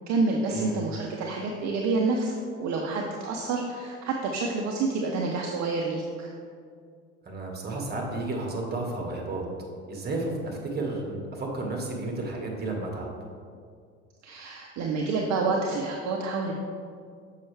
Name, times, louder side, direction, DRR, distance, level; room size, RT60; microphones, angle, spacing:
voice 1, 0.1-2.3 2.6-6.3 14.2-16.5, right 3 dB, 50° right, 0 dB, 0.8 m, -28 dB
voice 2, 7.3-9.5 9.9-13.1, right 2 dB, 25° right, 0 dB, 1.7 m, -32 dB
6.8 x 5.7 x 3.4 m, 2.2 s
hypercardioid pair, 70°, 37 cm